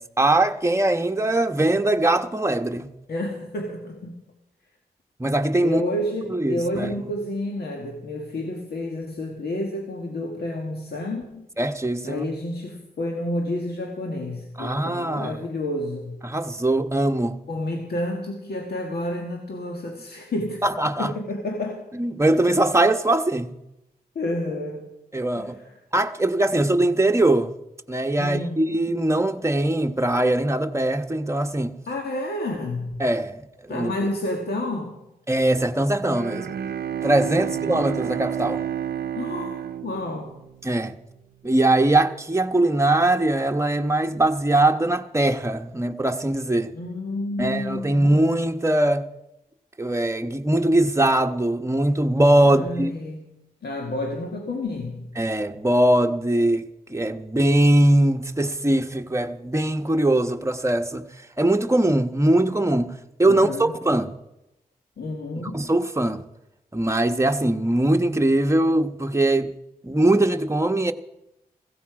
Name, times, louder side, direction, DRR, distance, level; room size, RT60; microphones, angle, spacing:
voice 1, 0.0-2.9 5.2-5.8 6.3-6.9 11.6-12.2 14.6-15.4 16.2-17.4 20.6-21.1 21.9-23.5 25.1-25.6 25.9-27.5 27.9-31.7 33.0-33.4 33.7-34.1 35.3-36.5 37.0-38.6 40.6-40.9 41.4-46.7 47.4-49.1 49.8-52.9 55.2-61.0 61.4-62.9 63.2-64.1 65.5-66.2 66.7-69.5 69.8-70.9, right 1 dB, 15° right, 1.1 m, -21 dB
voice 2, 3.1-4.2 5.6-11.5 12.0-16.2 17.5-20.6 21.0-21.8 24.1-24.9 25.3-25.8 28.2-28.9 31.9-33.0 33.7-35.0 37.2-37.8 39.1-40.4 46.7-48.2 52.4-53.3 53.6-55.1 63.2-63.7 65.0-65.6, left 1 dB, 85° left, 1.7 m, -30 dB
Bowed string instrument, 36.0-40.9, right 9 dB, 80° right, 0.6 m, -30 dB
16.0 x 15.0 x 4.9 m
cardioid pair, 45°, 16 cm